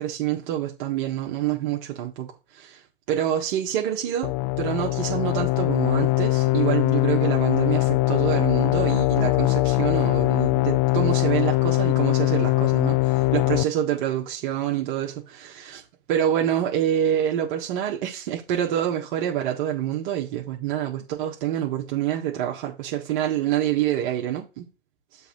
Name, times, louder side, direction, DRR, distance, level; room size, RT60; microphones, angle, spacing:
voice 1, 0.0-2.8 3.1-15.8 16.1-24.7, right 11 dB, 55° right, 1.6 m, -27 dB
sound 1, 4.2-13.6, left 20 dB, 50° left, 0.5 m, -21 dB
6.9 x 3.7 x 6.0 m
hypercardioid pair, 110°, 29 cm